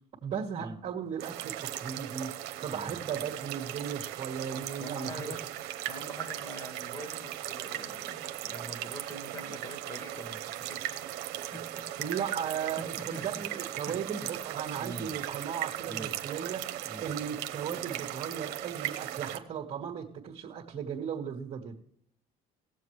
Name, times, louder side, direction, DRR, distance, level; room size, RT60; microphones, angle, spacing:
voice 1, 0.2-2.3 2.6-5.2 12.0-21.7, right 8 dB, 40° right, -4 dB, 1.6 m, -36 dB
sound 1, 1.2-19.4, right 13 dB, 75° right, 1.0 m, -38 dB
voice 2, 4.6-5.5 5.9-11.1 11.5-12.1 12.4-14.0 14.7-15.2 15.9-16.2 16.8-17.1, equal, 20° left, 7 dB, 1.6 m, -45 dB
18.0 x 7.3 x 3.1 m, 0.69 s
cardioid pair, 120°, 17 cm